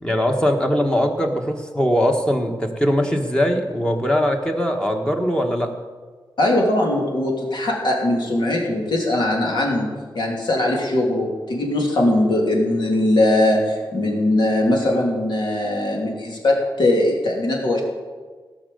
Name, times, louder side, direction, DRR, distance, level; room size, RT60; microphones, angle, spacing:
voice 1, 0.0-5.7, equal, 10° left, 3 dB, 1.5 m, -21 dB
voice 2, 6.4-17.8, left 1 dB, 70° left, -1 dB, 3.0 m, -20 dB
17.0 x 6.5 x 6.9 m, 1.4 s
wide cardioid pair, 115°, 8 cm